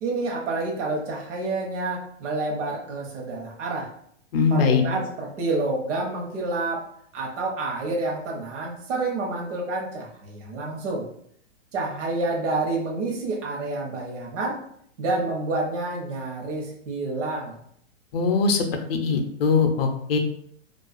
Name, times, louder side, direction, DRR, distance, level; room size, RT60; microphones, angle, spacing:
voice 1, 0.0-3.9 4.5-6.9 7.1-11.1 11.7-14.6 15.0-17.6, right 2 dB, 70° right, -2 dB, 0.8 m, -28 dB
voice 2, 4.3-4.8 18.1-20.2, left 5 dB, 50° left, 5 dB, 0.5 m, -21 dB
2.4 x 2.3 x 2.3 m, 0.66 s
hypercardioid pair, 140°, 38 cm